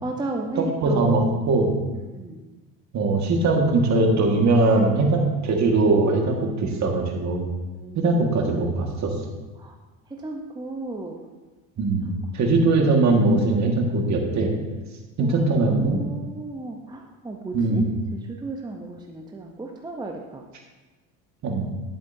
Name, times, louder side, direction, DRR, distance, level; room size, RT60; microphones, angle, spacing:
voice 1, 0.0-1.2 2.0-2.4 7.7-8.6 9.6-9.8 10.1-11.2 12.0-12.1 15.2-17.8 18.2-20.4, right 2 dB, 10° right, 1 dB, 0.7 m, -34 dB
voice 2, 0.6-1.7 2.9-7.5 8.0-9.1 11.8-14.5 15.2-16.0 17.5-17.9 21.4-21.7, right 3 dB, 45° right, 2 dB, 1.6 m, -21 dB
10.5 x 7.7 x 2.7 m, 1.2 s
supercardioid pair, 90°, 40 cm